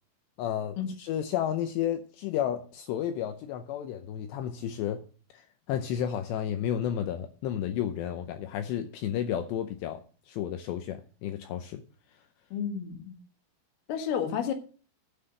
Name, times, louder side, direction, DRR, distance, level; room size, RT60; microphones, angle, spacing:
voice 1, 0.4-5.0 5.3-10.0 10.3-11.8, left 10 dB, 85° left, 7 dB, 2.5 m, -32 dB
voice 2, 12.5-13.2 13.9-14.5, left 8 dB, 60° left, 4 dB, 3.2 m, -31 dB
10.0 x 5.8 x 7.6 m, 0.39 s
omnidirectional pair, 5.8 m